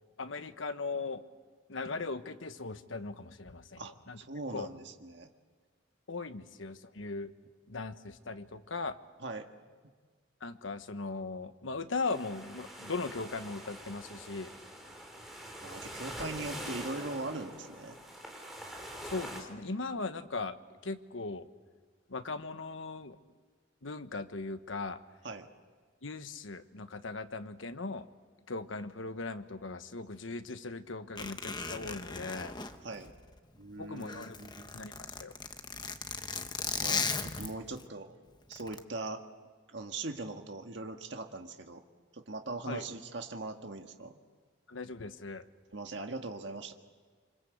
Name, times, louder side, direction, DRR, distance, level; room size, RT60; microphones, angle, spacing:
voice 1, 0.2-1.2 1.7-3.8 4.1-4.2 4.5-4.7 6.1-7.3 7.7-9.0 10.4-14.5 19.0-20.6 20.8-21.5 22.1-23.2 23.8-25.0 26.0-28.1 28.5-32.5 33.8-34.4 34.7-35.3 42.7-42.8 44.7-45.4, left 3 dB, 85° left, 10 dB, 1.2 m, -38 dB
voice 2, 3.8-5.3 6.4-6.5 9.2-9.5 15.6-18.0 25.2-25.5 32.8-33.1 33.6-34.7 36.8-38.2 38.5-39.2 39.7-41.8 42.1-44.2 45.7-46.7, right 2 dB, 65° right, 4 dB, 1.7 m, -41 dB
sound 1, 12.0-19.4, equal, ahead, 4.3 m, -44 dB
Zipper (clothing), 31.2-33.6 33.9-37.8 38.5-38.8, left 5 dB, 20° left, 1.1 m, -37 dB
27.0 x 25.0 x 8.1 m, 1.5 s
head